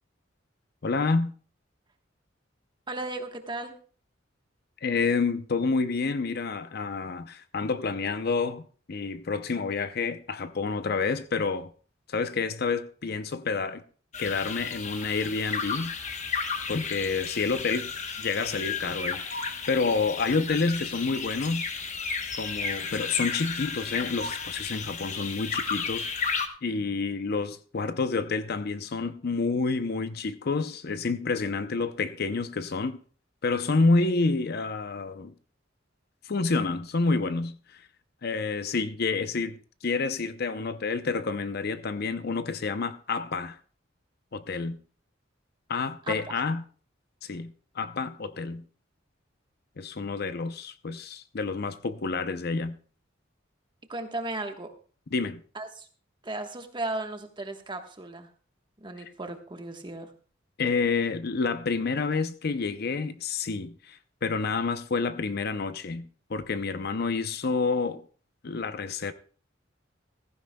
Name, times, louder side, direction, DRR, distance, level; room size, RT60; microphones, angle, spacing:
voice 1, 0.8-1.3 4.8-8.6 8.9-11.7 12.1-13.8 14.2-15.9 16.7-17.9 18.2-21.7 22.4-26.1 26.6-33.0 33.4-35.3 36.3-37.8 38.2-43.6 44.3-44.8 45.7-46.6 47.2-48.6 49.8-52.8 55.1-55.4 60.6-68.0 68.4-69.1, left 4 dB, 55° left, 0.6 m, -29 dB
voice 2, 2.9-3.7 46.1-46.3 53.9-54.7 55.5-55.9 56.2-58.3 58.8-60.1, right 2 dB, 25° right, 1.3 m, -35 dB
sound 1, 14.1-26.5, left 5 dB, 40° left, 1.1 m, -33 dB
15.5 x 15.0 x 2.3 m
head